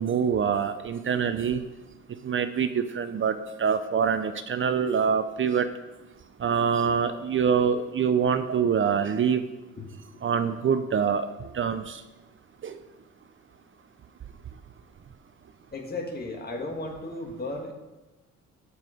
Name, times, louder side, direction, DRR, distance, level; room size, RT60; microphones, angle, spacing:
voice 1, 0.0-1.6 2.2-5.7 6.4-9.4 10.2-11.3 11.5-12.0 12.6-12.7, right 7 dB, 40° right, 10 dB, 0.6 m, -25 dB
voice 2, 15.7-17.7, left 2 dB, 30° left, 2 dB, 2.0 m, -34 dB
13.5 x 4.8 x 5.1 m, 1.1 s
cardioid pair, 90°, 30 cm